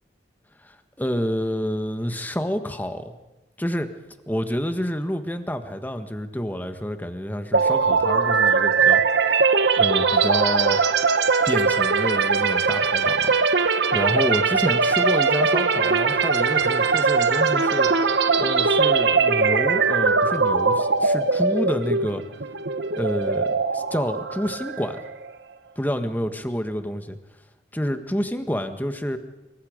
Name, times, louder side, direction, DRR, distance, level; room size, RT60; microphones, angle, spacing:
voice 1, 0.6-3.1 3.6-3.9 4.3-9.0 9.7-10.8 11.5-13.3 13.9-17.9 18.4-22.2 22.9-25.0 25.8-27.2 27.7-29.2, equal, 10° left, 8 dB, 1.5 m, -28 dB
sound 1, 7.5-25.3, right 5 dB, 85° right, 1.3 m, -21 dB
25.5 x 24.0 x 5.3 m, 1.0 s
head